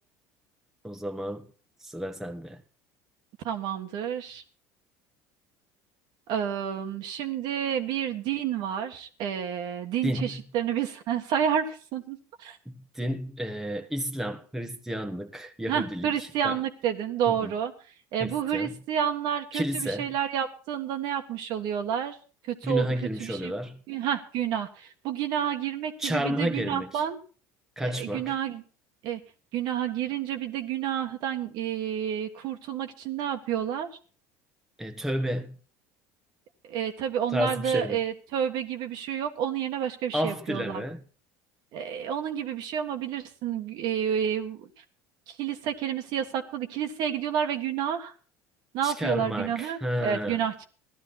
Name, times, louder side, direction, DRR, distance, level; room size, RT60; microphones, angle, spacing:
voice 1, 0.8-1.5 1.8-2.6 10.0-10.4 12.7-16.6 17.3-17.5 18.2-18.7 19.5-20.1 22.6-23.8 26.0-27.0 27.8-28.4 34.8-35.6 37.3-38.0 40.1-41.0 48.8-50.4, equal, 5° right, 1.2 m, -31 dB
voice 2, 3.4-4.4 6.3-12.6 15.7-17.7 18.1-22.2 22.5-22.9 23.2-23.5 23.9-27.2 27.8-28.6 29.0-29.2 29.5-33.9 36.7-40.8 41.7-44.7 45.3-48.1 48.7-50.6, right 9 dB, 65° right, 1.5 m, -30 dB
15.5 x 12.0 x 4.1 m
supercardioid pair, 100°, 8 cm